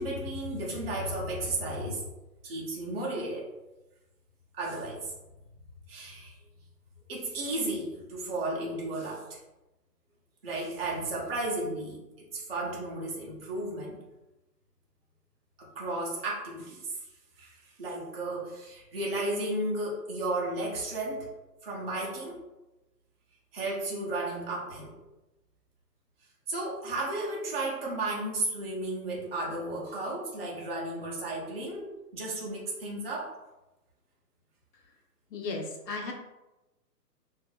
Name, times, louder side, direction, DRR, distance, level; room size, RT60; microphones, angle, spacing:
voice 1, 0.0-2.0 2.4-3.5 4.6-5.1 5.9-6.4 7.1-9.4 10.4-14.0 15.6-17.0 17.4-21.3 21.6-22.4 23.5-25.0 26.5-33.3, right 2 dB, 35° right, -5 dB, 0.6 m, -34 dB
voice 2, 35.3-36.1, left 3 dB, 75° left, 2 dB, 0.9 m, -35 dB
4.2 x 2.5 x 2.3 m, 1.0 s
hypercardioid pair, 170°, 50 cm